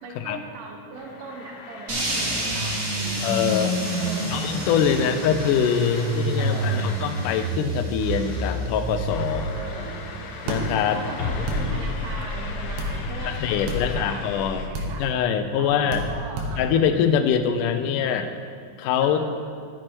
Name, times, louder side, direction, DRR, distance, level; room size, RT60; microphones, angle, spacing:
voice 1, 0.0-3.3 4.0-4.5 4.9-5.5 6.4-7.1 9.5-10.1 10.9-15.0 15.6-16.8 19.0-19.3, right 4 dB, 70° right, 1 dB, 2.5 m, -39 dB
sound 1, 1.0-14.7, left 4 dB, 75° left, 2.1 m, -36 dB
sound 2, 1.9-12.1, right 1 dB, 35° right, 2.0 m, -29 dB
voice 2, 3.2-3.8 4.3-9.5 10.5-11.0 13.3-14.7 15.0-16.0 16.6-18.3 18.8-19.3, left 8 dB, 90° left, 8 dB, 1.8 m, -24 dB
sound 3, 10.5-10.6 11.5-11.6 12.8-12.9 13.7-13.8 14.7-14.9 15.9-16.1 16.4-16.5, right 1 dB, 90° right, 3.2 m, -28 dB
12.0 x 7.7 x 4.6 m, 2.1 s
omnidirectional pair, 4.4 m